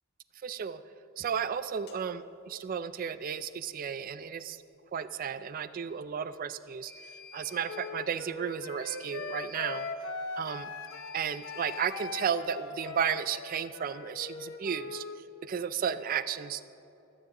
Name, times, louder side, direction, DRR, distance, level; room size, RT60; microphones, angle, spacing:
voice 1, 0.4-0.8 1.2-4.6 4.9-6.9 7.3-9.9 10.4-10.7 11.1-15.0 15.4-16.7, right 7 dB, 40° right, 13 dB, 0.3 m, -33 dB
sound 1, 1.9-2.0 6.9-8.0 8.9-10.0 10.9-12.0, left 5 dB, 50° left, 1.3 m, -50 dB
Wind instrument woodwind instrument, 7.7-15.2, left 3 dB, 65° left, 0.7 m, -40 dB
23.5 x 9.4 x 2.9 m, 2.9 s
head